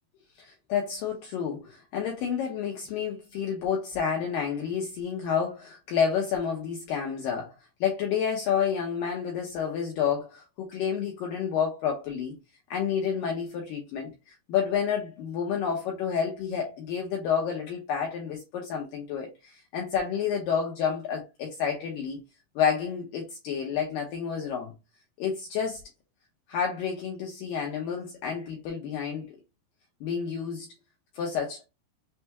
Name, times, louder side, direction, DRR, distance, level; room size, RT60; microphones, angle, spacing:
voice 1, 0.4-7.5 7.8-12.3 12.7-22.2 22.6-24.7 25.2-25.8 26.5-29.4 30.0-30.7 31.1-31.6, left 7 dB, 85° left, 1.9 m, -29 dB
6.4 x 2.2 x 2.9 m
omnidirectional pair, 4.9 m